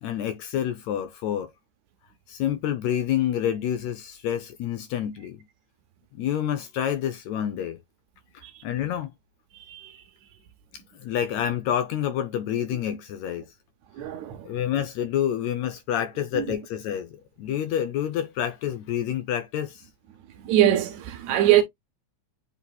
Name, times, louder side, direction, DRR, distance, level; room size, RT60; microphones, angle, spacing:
voice 1, 0.0-1.5 2.3-5.4 6.1-7.8 8.3-9.1 10.9-13.5 14.4-17.1 17.4-19.9, left 10 dB, 75° left, 1.7 m, -28 dB
voice 2, 9.5-10.0 13.9-14.5 16.3-16.5 20.3-21.6, right 12 dB, 75° right, 1.8 m, -23 dB
8.2 x 2.8 x 2.3 m
omnidirectional pair, 3.6 m